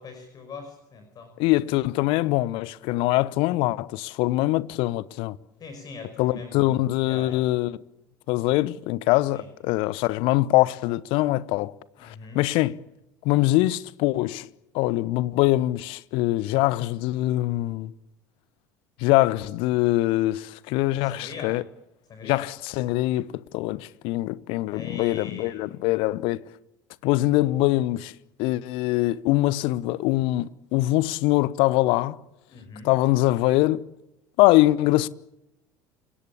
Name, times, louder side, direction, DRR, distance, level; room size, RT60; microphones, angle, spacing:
voice 1, 0.0-1.3 5.6-7.5 9.3-9.4 12.0-12.4 21.0-21.5 22.1-22.4 24.7-25.7 32.5-32.9, left 4 dB, 35° left, 5.4 m, -41 dB
voice 2, 1.4-5.4 6.2-7.8 8.3-11.7 12.0-12.8 13.2-14.5 14.7-17.9 19.0-21.6 22.2-26.4 27.0-28.1 28.4-32.2 32.8-33.9 34.4-35.1, left 17 dB, 55° left, 0.9 m, -23 dB
29.0 x 17.5 x 8.6 m
figure-of-eight pair, 65°, 11 cm